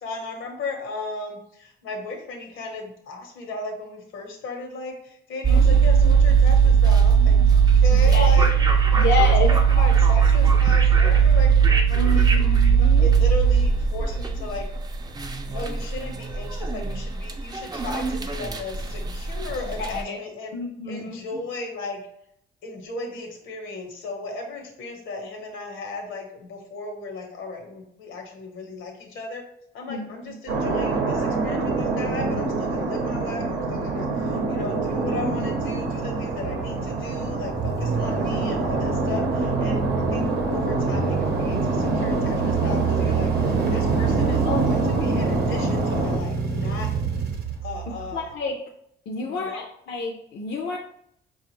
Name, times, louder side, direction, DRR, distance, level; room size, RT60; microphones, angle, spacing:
voice 1, 0.0-8.5 8.9-12.4 12.6-14.7 15.4-20.5 20.9-22.0 22.6-29.4 29.7-39.8 40.1-46.9 47.6-48.2 49.2-49.7, left 3 dB, 80° left, 3 dB, 1.0 m, -35 dB
sound 1, 5.4-19.9, right 7 dB, 20° right, 0.4 m, -18 dB
voice 2, 5.5-5.8 6.0-6.1 8.0-8.3 8.9-9.6 12.0-13.1 19.8-20.2 20.5-21.4 29.9-30.4 44.5-44.7 47.9-48.6 49.1-50.8, left 3 dB, 60° left, 1 dB, 0.5 m, -29 dB
sound 2, 30.5-46.2, right 3 dB, 85° right, 0.7 m, -26 dB
sound 3, 34.0-48.3, right 5 dB, 50° right, 0.8 m, -29 dB
4.8 x 2.4 x 3.0 m, 0.72 s
cardioid pair, 90°, 20 cm